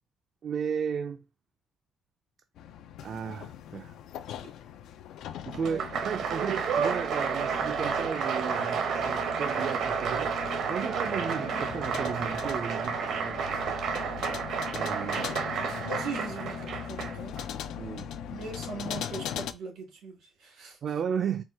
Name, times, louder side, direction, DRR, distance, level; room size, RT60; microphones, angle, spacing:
voice 1, 0.4-1.2 3.0-3.9 5.5-10.4 10.7-13.8 14.7-15.3 17.8-18.1 20.8-21.4, right 7 dB, 55° right, 0.4 m, -34 dB
sound 1, 2.6-19.5, left 9 dB, 90° left, 0.4 m, -40 dB
Applause, 5.5-17.4, right 6 dB, 75° right, 0.8 m, -31 dB
voice 2, 15.3-17.4 18.3-20.8, right 3 dB, 90° right, 2.2 m, -40 dB
4.4 x 2.3 x 4.5 m
cardioid pair, 125°, 0 cm